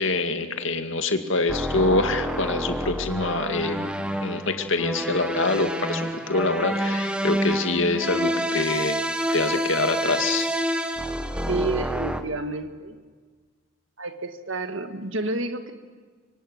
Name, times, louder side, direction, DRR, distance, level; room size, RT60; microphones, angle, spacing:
voice 1, 0.0-3.9 4.2-9.0 9.3-10.5, left 3 dB, 65° left, 7 dB, 2.3 m, -25 dB
sound 1, 1.5-12.2, right 1 dB, 5° right, 1.3 m, -28 dB
voice 2, 11.5-13.0 14.0-15.7, right 2 dB, 65° right, 9 dB, 1.9 m, -30 dB
25.0 x 24.0 x 9.5 m, 1.5 s
head